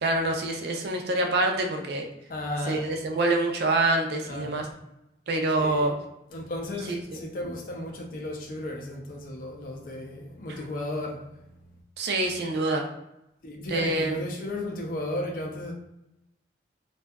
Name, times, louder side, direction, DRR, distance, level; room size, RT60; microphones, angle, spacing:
voice 1, 0.0-2.1 2.7-4.7 5.3-5.9 6.8-7.2 10.5-10.6 12.0-12.9 13.7-14.2, right 2 dB, 60° right, 0.4 m, -26 dB
voice 2, 2.3-2.8 4.2-4.6 5.6-5.9 6.3-11.2 13.4-15.7, left 1 dB, 45° left, 0.4 m, -34 dB
2.6 x 2.3 x 2.2 m
head